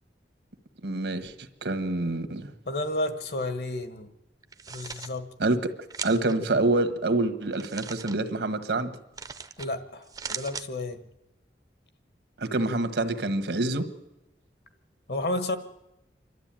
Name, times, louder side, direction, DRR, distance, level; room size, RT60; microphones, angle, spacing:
voice 1, 0.8-1.3 1.6-2.5 5.4-5.6 6.0-8.9 12.4-13.9, right 2 dB, 75° right, 9 dB, 1.5 m, -26 dB
voice 2, 2.6-4.1 4.7-5.3 9.6-11.0 15.1-15.6, left 2 dB, 60° left, 9 dB, 1.6 m, -31 dB
sound 1, 4.4-5.1 5.9-6.4 7.5-8.2 9.2-9.7 10.0-10.7, right 6 dB, 20° right, 0.7 m, -38 dB
28.0 x 12.0 x 9.0 m, 0.95 s
head